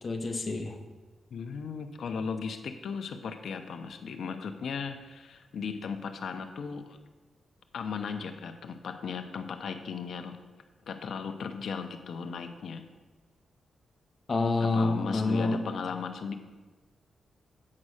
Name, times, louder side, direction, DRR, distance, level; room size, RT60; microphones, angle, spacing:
voice 1, 0.0-0.8 14.3-15.6, left 3 dB, 35° left, 5 dB, 1.0 m, -28 dB
voice 2, 1.3-7.0 7.7-10.4 10.9-12.8 14.6-16.4, left 5 dB, 70° left, 7 dB, 0.8 m, -36 dB
8.6 x 5.4 x 6.4 m, 1.3 s
wide cardioid pair, 120°, 0 cm